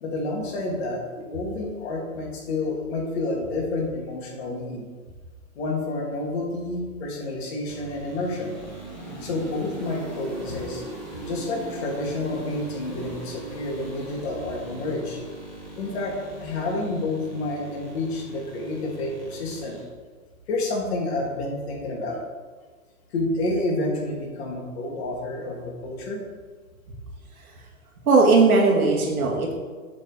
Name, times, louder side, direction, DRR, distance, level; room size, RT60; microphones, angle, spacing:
voice 1, 0.0-4.9 5.6-8.5 9.2-10.8 11.2-15.2 15.8-19.8 20.5-22.2 23.1-26.2, left 2 dB, 45° left, -1 dB, 1.9 m, -29 dB
sound 1, 7.7-19.8, right 2 dB, 5° left, 0.4 m, -40 dB
voice 2, 28.1-29.5, right 3 dB, 80° right, -1 dB, 1.9 m, -18 dB
7.3 x 3.9 x 4.7 m, 1.5 s
hypercardioid pair, 145°, 43 cm